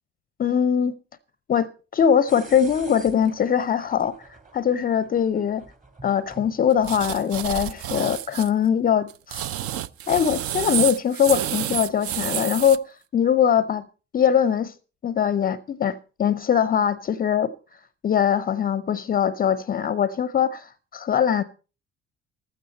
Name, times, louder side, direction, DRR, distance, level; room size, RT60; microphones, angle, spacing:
voice 1, 0.4-0.9 1.5-5.6 6.0-9.5 10.1-13.9 14.1-14.7 15.0-17.5 18.0-21.4, left 8 dB, 30° left, 0.6 m, -22 dB
sound 1, 2.3-8.2, right 3 dB, 25° right, 2.1 m, -48 dB
sound 2, 6.8-8.5 9.1-12.8, right 11 dB, 45° right, 0.6 m, -29 dB
15.0 x 13.0 x 4.2 m
figure-of-eight pair, 50°, 32 cm